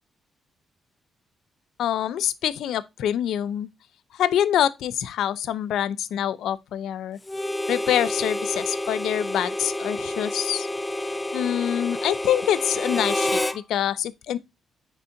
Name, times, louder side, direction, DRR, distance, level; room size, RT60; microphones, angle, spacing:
voice 1, 1.8-3.7 4.1-7.2 7.7-10.7 11.3-14.4, left 10 dB, 85° left, 0.6 m, -25 dB
Harmonica, 7.3-13.6, left 1 dB, 10° left, 0.5 m, -29 dB
9.3 x 4.0 x 2.6 m
cardioid pair, 160°, 0 cm